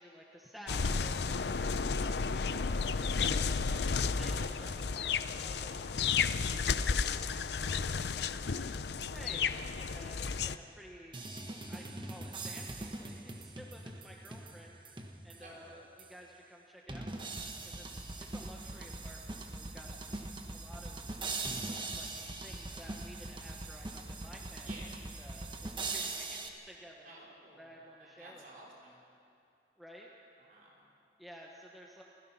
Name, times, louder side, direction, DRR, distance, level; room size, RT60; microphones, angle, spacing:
voice 1, 0.0-3.6 4.1-8.7 9.1-11.2 11.7-20.0 20.5-21.2 21.9-27.1 27.6-28.6 29.8-30.1 31.2-32.0, equal, ahead, -2 dB, 1.2 m, -53 dB
sound 1, 0.7-10.6, left 5 dB, 70° left, 0.6 m, -32 dB
sound 2, 11.1-15.6 16.0-16.1 16.9-26.5, right 3 dB, 25° right, 1.2 m, -41 dB
voice 2, 15.4-15.8 24.6-25.0 27.0-27.7 28.0-29.0 30.4-30.9, right 1 dB, 50° right, -3 dB, 4.4 m, -53 dB
29.5 x 16.0 x 5.8 m, 2.5 s
head